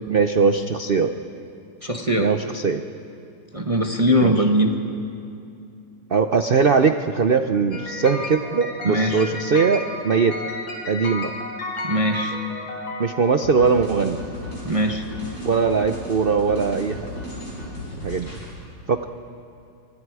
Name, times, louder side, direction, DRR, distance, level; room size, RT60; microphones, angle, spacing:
voice 1, 0.1-1.1 2.2-2.8 4.2-4.3 6.1-10.4 10.9-11.3 13.0-14.2 15.4-17.1 18.0-18.3 18.9-19.0, right 5 dB, 90° right, 7 dB, 0.4 m, -20 dB
voice 2, 1.8-2.3 3.5-4.7 8.9-9.2 11.8-12.3 14.6-15.0, equal, 20° right, 3 dB, 1.2 m, -21 dB
sound 1, 7.7-13.7, left 1 dB, 90° left, 3.8 m, -33 dB
sound 2, 13.4-18.5, left 1 dB, 55° left, 7.2 m, -35 dB
27.0 x 25.0 x 4.8 m, 2.5 s
omnidirectional pair, 2.0 m